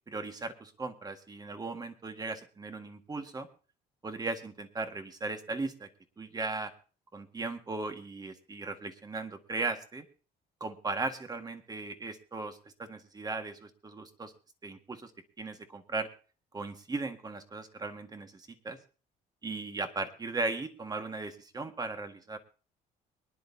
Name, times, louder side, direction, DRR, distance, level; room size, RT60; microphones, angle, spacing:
voice 1, 0.1-3.5 4.0-5.9 6.2-6.7 7.1-10.1 10.6-14.3 14.6-15.1 15.4-16.1 16.5-18.8 19.4-22.4, right 3 dB, 25° right, 7 dB, 1.7 m, -37 dB
23.5 x 10.5 x 2.8 m, 0.36 s
cardioid pair, 110°, 17 cm